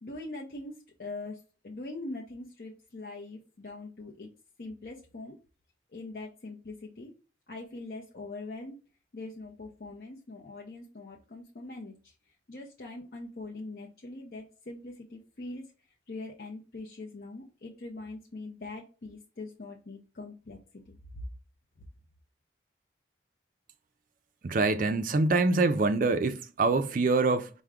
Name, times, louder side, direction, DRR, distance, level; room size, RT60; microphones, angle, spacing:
voice 1, 0.0-0.7 1.0-4.3 4.6-5.4 5.9-7.1 7.5-8.7 9.1-12.1 12.5-15.6 16.1-20.6 21.1-21.2 21.8-21.9, left 2 dB, 55° left, 0.6 m, -42 dB
voice 2, 24.4-27.5, right 3 dB, 45° right, 0.4 m, -25 dB
4.6 x 2.1 x 3.5 m
head